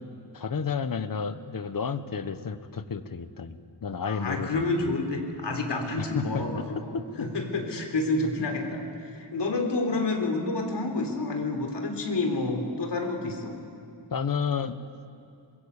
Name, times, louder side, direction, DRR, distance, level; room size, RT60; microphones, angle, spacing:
voice 1, 0.3-4.9 6.0-7.3 14.1-14.8, left 6 dB, 45° left, 11 dB, 1.2 m, -31 dB
voice 2, 4.1-13.5, left 2 dB, 60° left, 4 dB, 3.7 m, -29 dB
26.0 x 22.0 x 8.3 m, 2.4 s
wide cardioid pair, 145°, 46 cm